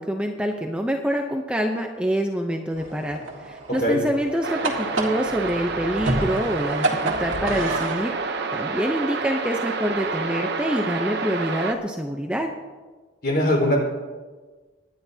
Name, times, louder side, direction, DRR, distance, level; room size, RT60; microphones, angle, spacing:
voice 1, 0.0-12.5, equal, 5° right, 3 dB, 0.6 m, -26 dB
sound 1, 2.7-8.0, right 2 dB, 85° right, 1.9 m, -29 dB
sound 2, 4.4-11.7, right 4 dB, 55° right, 0.8 m, -29 dB
voice 2, 13.2-13.8, equal, 50° left, -2 dB, 4.3 m, -20 dB
26.0 x 10.5 x 2.8 m, 1.4 s
head